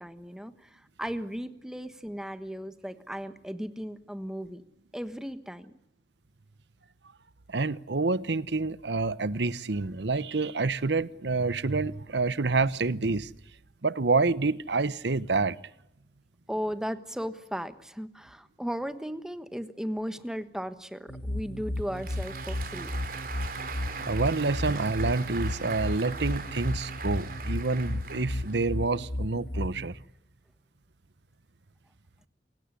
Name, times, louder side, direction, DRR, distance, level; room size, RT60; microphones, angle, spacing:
voice 1, 0.0-4.6 4.9-5.7 16.5-22.9, equal, 5° right, 1.3 m, -36 dB
voice 2, 7.5-13.3 13.8-15.6 24.0-30.0, right 3 dB, 75° right, 0.9 m, -28 dB
sound 1, 21.1-29.9, left 1 dB, 55° left, 2.1 m, -34 dB
Applause, 21.8-28.9, right 5 dB, 50° right, 3.1 m, -40 dB
28.5 x 17.0 x 9.9 m
head